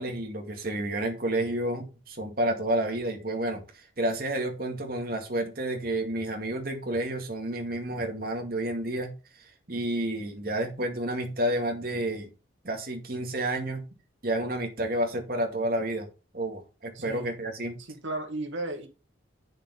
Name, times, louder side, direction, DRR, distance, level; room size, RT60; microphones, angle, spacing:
voice 1, 0.0-9.1 9.7-12.3 12.6-13.8 14.2-16.1 16.3-17.8, right 1 dB, 50° right, 2.2 m, -30 dB
voice 2, 17.0-17.3 17.9-18.9, right 2 dB, 75° right, 2.1 m, -34 dB
8.8 x 6.4 x 4.1 m
head